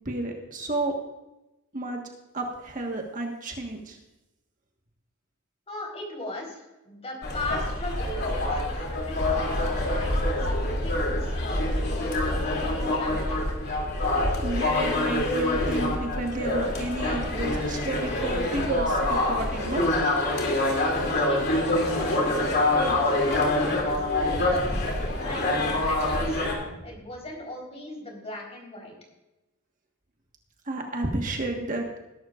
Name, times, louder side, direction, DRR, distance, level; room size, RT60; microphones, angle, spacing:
voice 1, 0.0-0.9 1.7-2.0 2.3-4.0 14.4-19.9 24.3-24.8 26.7-26.8 30.7-31.8, right 2 dB, 40° right, 2 dB, 1.5 m, -31 dB
voice 2, 5.7-11.3 11.7-13.6 21.0-26.4 26.8-28.9, left 2 dB, 30° left, 0 dB, 4.0 m, -39 dB
sound 1, 7.2-26.5, left 1 dB, 50° left, 2.8 m, -26 dB
20.5 x 12.0 x 2.5 m, 0.99 s
head